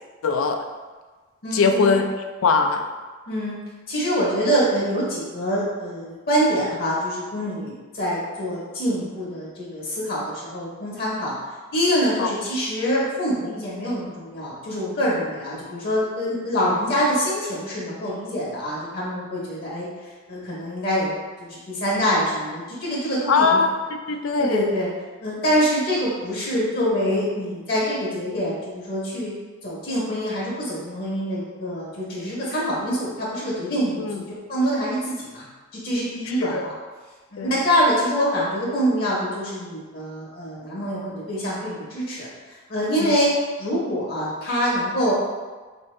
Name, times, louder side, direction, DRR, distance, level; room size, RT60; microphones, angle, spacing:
voice 1, 0.2-0.6 1.5-2.1 2.4-2.8 12.2-12.3 16.6-16.7 23.3-23.7 24.1-24.6 34.0-34.2 36.3-36.7 37.4-37.5 43.0-43.2, left 4 dB, 90° left, 5 dB, 0.4 m, -21 dB
voice 2, 1.4-2.0 3.3-3.6 3.9-11.3 11.7-19.9 20.3-21.1 21.4-23.6 24.4-24.9 25.2-29.3 29.6-35.4 35.7-36.7 37.3-42.3 42.7-43.3 43.6-45.1, equal, 50° left, -5 dB, 0.8 m, -25 dB
4.2 x 2.6 x 3.1 m, 1.4 s
head